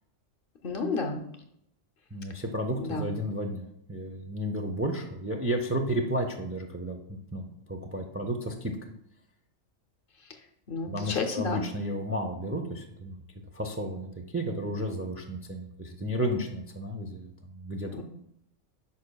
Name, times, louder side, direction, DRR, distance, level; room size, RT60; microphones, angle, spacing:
voice 1, 0.6-1.2 2.7-3.2 10.7-11.6 18.0-18.1, left 4 dB, 55° left, 5 dB, 0.8 m, -31 dB
voice 2, 2.1-8.7 10.9-13.2 13.5-17.9, equal, 20° right, 3 dB, 0.4 m, -32 dB
9.5 x 5.3 x 2.3 m, 0.76 s
omnidirectional pair, 1.2 m